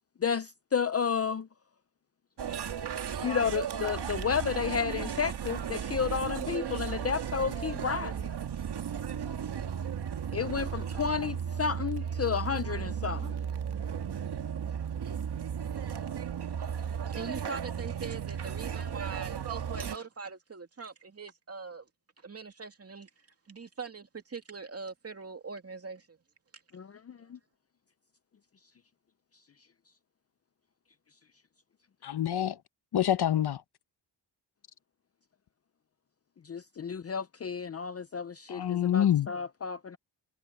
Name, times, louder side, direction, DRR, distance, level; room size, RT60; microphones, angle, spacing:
voice 1, 0.2-1.5 3.2-8.1 10.3-13.3 26.7-27.4 36.4-40.0, left 6 dB, 35° left, 0.6 m, -32 dB
sound 1, 2.4-20.0, right 8 dB, 65° right, 1.8 m, -35 dB
voice 2, 17.1-21.9 22.2-23.1 23.5-26.2, right 5 dB, 35° right, 2.6 m, -42 dB
voice 3, 32.0-32.6 32.9-33.6 38.5-39.3, left 11 dB, 60° left, 0.9 m, -26 dB
wide cardioid pair, 110°, 43 cm